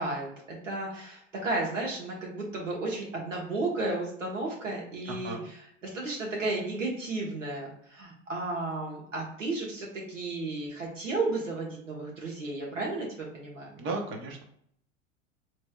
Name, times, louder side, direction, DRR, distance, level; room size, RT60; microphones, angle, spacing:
voice 1, 0.0-13.8, right 2 dB, 80° right, -2 dB, 1.2 m, -33 dB
voice 2, 13.8-14.4, right 3 dB, 30° right, 1 dB, 1.0 m, -34 dB
4.1 x 3.2 x 2.3 m, 0.69 s
figure-of-eight pair, 85°, 37 cm